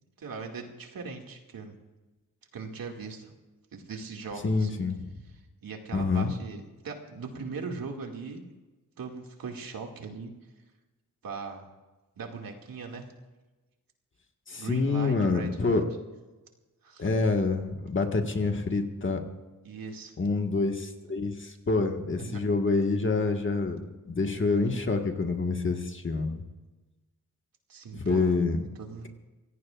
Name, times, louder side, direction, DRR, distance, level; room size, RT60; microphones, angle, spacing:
voice 1, 0.2-1.8 2.5-3.3 3.7-4.8 5.6-8.4 9.0-10.3 11.2-11.7 12.2-13.1 14.6-15.8 16.8-17.2 19.6-20.1 22.2-22.4 27.7-28.2 28.8-29.1, right 4 dB, 80° right, 2 dB, 2.4 m, -39 dB
voice 2, 4.4-5.1 5.9-6.3 14.5-15.8 17.0-19.2 20.2-23.8 24.0-26.4 27.9-28.6, left 3 dB, 35° left, 3 dB, 1.7 m, -27 dB
26.0 x 17.5 x 2.5 m, 1.2 s
wide cardioid pair, 140°, 35 cm